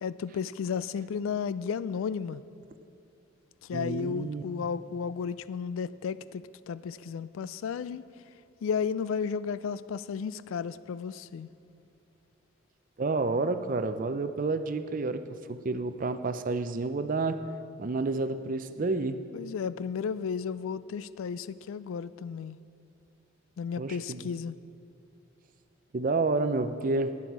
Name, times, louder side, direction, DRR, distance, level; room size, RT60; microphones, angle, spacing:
voice 1, 0.0-2.4 3.7-8.0 8.6-11.5 19.3-22.6 23.6-24.5, left 6 dB, 80° left, 17 dB, 0.3 m, -33 dB
voice 2, 3.7-4.4 13.0-15.2 15.5-17.4 17.8-19.2 23.8-24.3 25.9-27.2, right 3 dB, 40° right, 10 dB, 0.4 m, -29 dB
11.5 x 9.7 x 4.6 m, 2.6 s
head